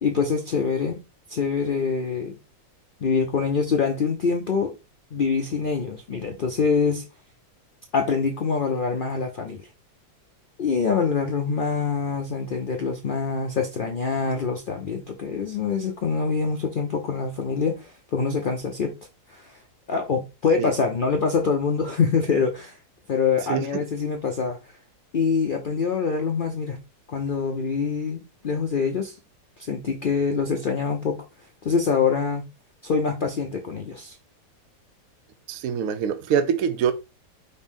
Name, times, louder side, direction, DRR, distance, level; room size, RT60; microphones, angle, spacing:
voice 1, 0.0-1.0 1.3-2.4 3.0-4.7 5.1-7.0 7.9-9.6 10.6-18.9 19.3-19.5 19.9-22.8 23.1-24.6 25.1-26.8 27.1-29.1 29.6-31.2 31.6-32.4 32.8-34.2, left 5 dB, 80° left, 0.4 m, -25 dB
voice 2, 23.5-23.8 35.5-36.9, right 8 dB, 70° right, 0.9 m, -24 dB
5.3 x 2.6 x 3.5 m
omnidirectional pair, 1.7 m